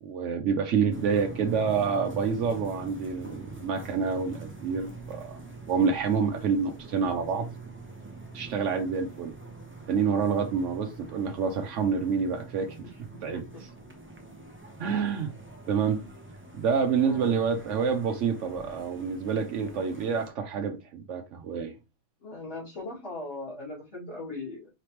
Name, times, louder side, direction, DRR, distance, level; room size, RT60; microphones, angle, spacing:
voice 1, 0.0-5.4 5.7-7.5 8.3-9.3 9.9-12.9 13.2-13.4 14.8-15.3 15.7-16.0 16.5-21.8, right 6 dB, 80° right, 1.0 m, -27 dB
sound 1, 0.9-20.3, right 3 dB, 10° right, 0.7 m, -44 dB
voice 2, 22.2-24.7, left 2 dB, 50° left, 2.7 m, -39 dB
4.8 x 3.3 x 2.9 m
omnidirectional pair, 1.3 m